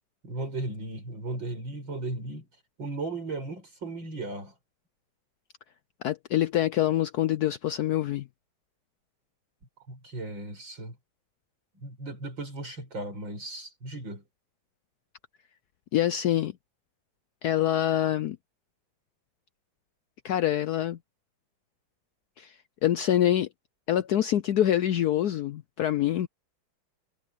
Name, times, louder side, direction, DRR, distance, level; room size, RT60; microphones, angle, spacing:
voice 1, 0.2-2.5 2.8-4.5 9.9-11.0 11.8-14.2, right 2 dB, 70° right, 7.7 m, -36 dB
voice 2, 6.0-8.3 15.9-16.5 17.4-18.4 20.2-21.0 22.4-22.5 22.8-23.5 23.9-26.3, left 12 dB, 70° left, 0.9 m, -25 dB
omnidirectional pair, 2.2 m